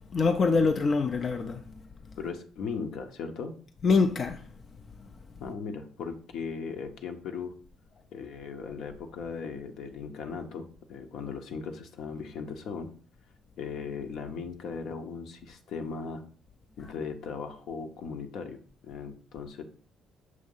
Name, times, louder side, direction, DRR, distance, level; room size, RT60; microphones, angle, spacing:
voice 1, 0.1-1.6 3.8-4.4, left 4 dB, 40° left, 0.5 m, -24 dB
voice 2, 2.2-3.5 5.4-7.5 8.1-12.9 13.6-16.2 16.8-19.6, left 5 dB, 70° left, 0.9 m, -38 dB
6.4 x 2.8 x 5.5 m
cardioid pair, 90°, 0 cm